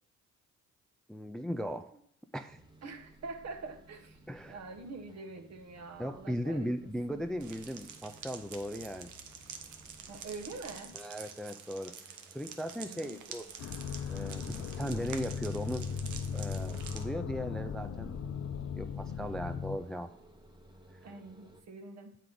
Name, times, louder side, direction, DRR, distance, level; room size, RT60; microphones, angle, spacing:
voice 1, 1.1-1.9 2.3-2.6 4.3-4.6 6.0-9.1 10.9-11.9 12.3-13.5 14.1-15.9 16.3-18.2 18.7-20.1, equal, ahead, 9 dB, 0.3 m, -37 dB
sound 1, 2.5-21.6, right 1 dB, 15° right, 1.0 m, -58 dB
voice 2, 2.8-4.2 4.5-7.2 10.1-11.0 12.8-13.2 21.0-22.2, right 3 dB, 60° right, 7 dB, 1.1 m, -45 dB
sound 2, 7.4-17.0, right 7 dB, 75° right, 0.8 m, -48 dB
sound 3, 13.6-19.8, left 6 dB, 55° left, 0.5 m, -38 dB
7.6 x 4.7 x 3.8 m, 0.70 s
cardioid pair, 90°, 30 cm